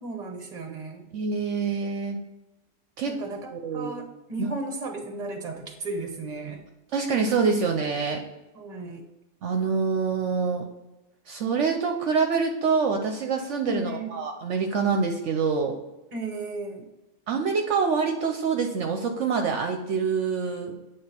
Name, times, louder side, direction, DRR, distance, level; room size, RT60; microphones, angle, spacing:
voice 1, 0.0-1.0 3.0-6.6 8.5-9.0 13.6-14.1 16.1-16.9, right 2 dB, 35° right, 4 dB, 1.1 m, -35 dB
voice 2, 1.1-2.2 3.0-3.2 3.5-4.0 6.9-8.2 9.4-10.7 11.3-15.7 17.3-20.7, right 5 dB, 65° right, 4 dB, 1.0 m, -26 dB
8.6 x 3.5 x 4.3 m, 1.0 s
omnidirectional pair, 1.4 m